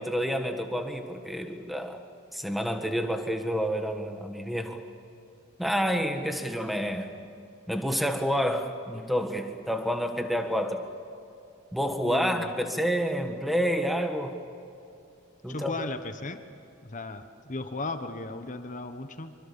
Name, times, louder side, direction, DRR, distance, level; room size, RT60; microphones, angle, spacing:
voice 1, 0.0-2.0 2.3-4.8 5.6-7.2 7.7-10.8 11.7-14.4 15.4-15.7, equal, ahead, 5 dB, 1.7 m, -29 dB
voice 2, 12.0-12.5 15.5-16.4 16.8-19.4, left 2 dB, 35° left, 8 dB, 1.2 m, -36 dB
26.0 x 24.0 x 7.1 m, 2.7 s
head